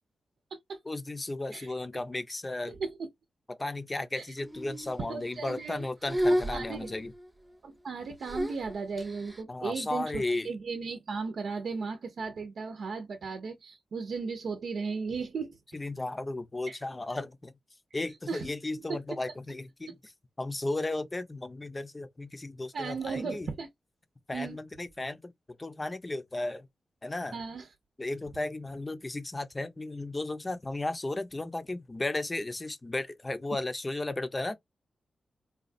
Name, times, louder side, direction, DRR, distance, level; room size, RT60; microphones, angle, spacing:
voice 1, 0.9-2.8 3.5-7.1 9.5-10.5 15.7-17.6 17.9-20.1 20.4-23.5 24.3-25.3 25.6-26.7 27.0-27.4 28.0-34.6, left 2 dB, 25° left, 0.6 m, -35 dB
voice 2, 2.7-3.1 4.1-4.2 4.7-5.9 6.5-6.9 7.6-15.6 16.7-16.8 18.3-18.5 18.9-19.0 22.7-23.7 24.3-24.6 27.3-27.7, right 4 dB, 75° right, 0.7 m, -36 dB
sound 1, 4.4-4.9 5.3-5.8 6.0-7.2 8.2-9.4, equal, 20° right, 0.7 m, -32 dB
4.0 x 2.3 x 2.5 m
cardioid pair, 80°, 0 cm